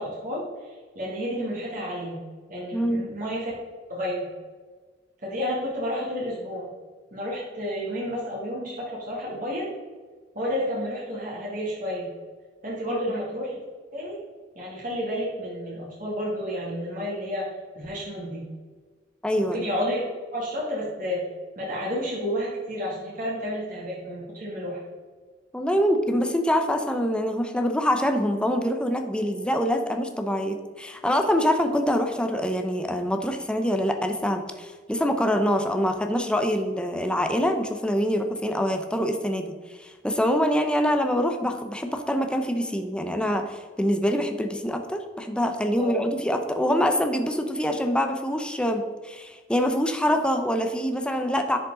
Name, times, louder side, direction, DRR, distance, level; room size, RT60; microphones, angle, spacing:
voice 1, 0.0-2.2 2.5-3.5 3.9-4.3 5.2-6.7 7.1-9.7 10.3-12.1 12.6-13.6 13.9-14.2 14.6-17.5 17.7-18.4 19.3-21.3 21.6-24.8 45.8-46.1, equal, 50° right, -6 dB, 2.5 m, -31 dB
voice 2, 2.7-3.0 12.9-13.0 19.2-19.7 25.5-39.5 39.8-51.6, equal, 5° left, 5 dB, 0.7 m, -25 dB
10.5 x 5.1 x 3.9 m, 1.5 s
head